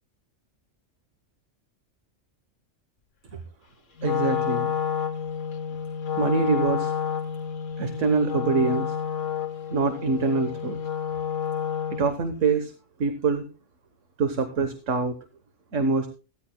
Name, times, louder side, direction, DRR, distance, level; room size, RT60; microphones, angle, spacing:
Wind instrument woodwind instrument, 4.0-12.2, left 8 dB, 85° left, 1.4 m, -29 dB
voice 1, 4.0-4.7 6.1-6.9 7.8-9.0 9.7-10.8 11.9-12.7 13.0-13.4 14.2-15.1 15.7-16.1, right 4 dB, 85° right, 7 dB, 1.6 m, -24 dB
16.5 x 13.5 x 2.2 m, 0.34 s
omnidirectional pair, 1.2 m